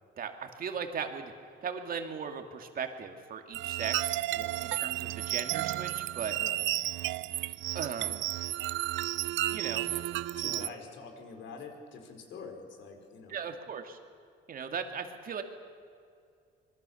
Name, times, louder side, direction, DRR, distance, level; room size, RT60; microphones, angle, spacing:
voice 1, 0.2-1.3 1.6-4.1 4.6-6.4 7.7-8.3 9.5-9.9 10.4-10.7 13.3-14.0 14.5-15.4, right 6 dB, 45° right, 5 dB, 2.5 m, -38 dB
sound 1, 3.5-10.7, right 15 dB, 70° right, 0.6 m, -32 dB
voice 2, 4.3-4.8 6.3-6.6 7.5-7.6 10.3-13.4, left 5 dB, 70° left, 4 dB, 4.7 m, -46 dB
26.5 x 22.5 x 7.2 m, 2.3 s
cardioid pair, 130°, 20 cm